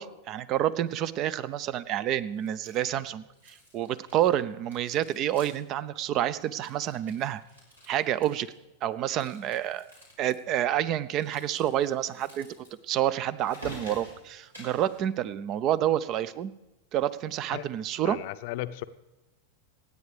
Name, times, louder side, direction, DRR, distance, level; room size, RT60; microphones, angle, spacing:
voice 1, 0.0-7.4 7.9-8.5 8.8-9.9 10.2-12.5 12.9-16.5 16.9-18.2, right 11 dB, 35° right, 18 dB, 0.6 m, -28 dB
sound 1, 2.4-3.0 3.3-4.4 4.6-5.8 6.0-6.1 6.4-8.6 9.1-10.3 11.1-15.0, left 1 dB, 80° right, 4.5 m, -49 dB
voice 2, 18.0-18.8, left 16 dB, 50° left, 12 dB, 0.6 m, -35 dB
26.5 x 9.7 x 3.4 m, 1.0 s
figure-of-eight pair, 90°, 0 cm